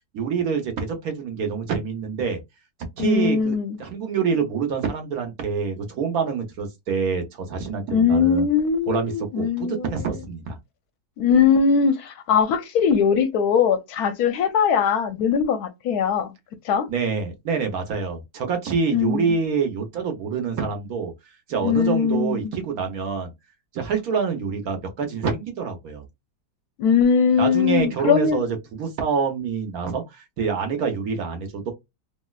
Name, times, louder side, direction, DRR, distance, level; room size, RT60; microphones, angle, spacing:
voice 1, 0.1-2.4 3.0-8.5 8.9-10.6 16.9-21.1 21.5-23.3 23.7-26.0 27.4-31.7, right 5 dB, 65° right, 1.2 m, -26 dB
voice 2, 3.0-3.8 7.9-9.9 11.2-16.3 16.6-16.9 18.9-19.3 21.6-22.5 26.8-28.4, left 6 dB, 75° left, 1.0 m, -20 dB
3.1 x 2.6 x 2.3 m
omnidirectional pair, 1.8 m